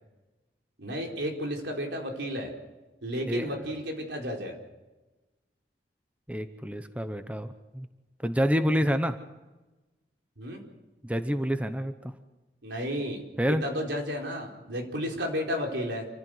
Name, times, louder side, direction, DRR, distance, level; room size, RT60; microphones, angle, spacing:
voice 1, 0.8-2.5 3.0-4.6 10.4-10.6 12.6-16.1, equal, 90° right, 1 dB, 4.4 m, -32 dB
voice 2, 6.3-7.9 8.2-9.2 11.0-12.1 13.4-13.6, equal, 10° right, 9 dB, 0.9 m, -28 dB
27.0 x 15.0 x 7.9 m, 1.1 s
head